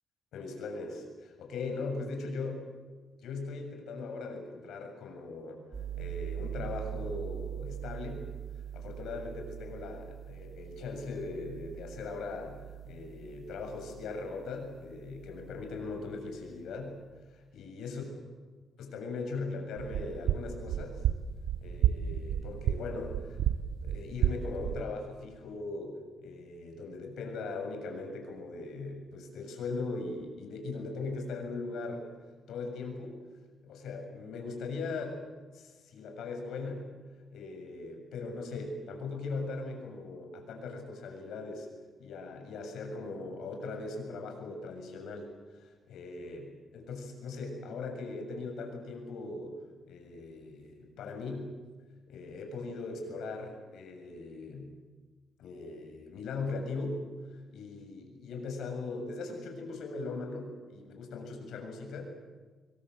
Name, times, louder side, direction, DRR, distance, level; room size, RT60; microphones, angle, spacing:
voice 1, 0.3-2.6 3.2-5.6 6.0-8.3 8.7-12.6 12.9-17.0 17.3-18.0 18.8-21.0 21.6-32.1 32.5-33.2 33.6-35.2 35.5-36.9 37.3-41.7 42.0-49.6 49.9-51.5 52.1-54.7 55.4-57.1 57.5-62.1, left 3 dB, 70° left, 3 dB, 7.0 m, -39 dB
sound 1, 5.7-16.4, right 10 dB, 30° right, 3.0 m, -43 dB
sound 2, 19.8-24.8, right 10 dB, 90° right, 0.9 m, -31 dB
25.5 x 23.0 x 7.8 m, 1.4 s
cardioid pair, 175°, 0 cm